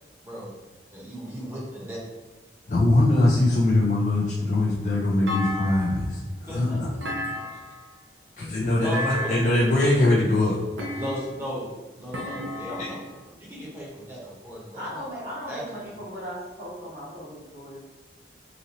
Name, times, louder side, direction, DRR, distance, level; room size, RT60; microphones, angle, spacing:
voice 1, 0.9-2.0 6.4-6.8 8.4-9.0 10.9-11.7 12.0-13.0 13.4-15.0 15.5-15.9, equal, 15° right, -6 dB, 0.9 m, -36 dB
voice 2, 2.7-6.9 8.4-10.6 12.8-12.9, left 2 dB, 45° left, -5 dB, 0.4 m, -22 dB
Thump thud, 5.3-6.2 7.0-7.9 8.9-9.7 10.8-11.5 12.1-13.2, left 1 dB, 90° right, 0.6 m, -33 dB
voice 3, 14.7-17.8, equal, 55° right, -5 dB, 1.1 m, -37 dB
4.0 x 2.5 x 2.9 m, 1.2 s
head